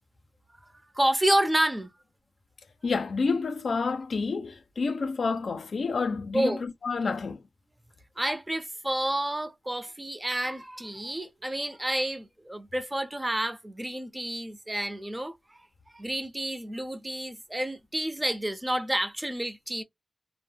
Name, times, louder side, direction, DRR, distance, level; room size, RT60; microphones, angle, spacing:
voice 1, 0.9-1.9 6.3-6.6 8.2-15.7 15.9-19.8, right 1 dB, 20° right, 0.5 m, -29 dB
voice 2, 2.8-7.4, left 4 dB, 85° left, 0.4 m, -29 dB
2.1 x 2.0 x 3.1 m
cardioid pair, 45°, 0 cm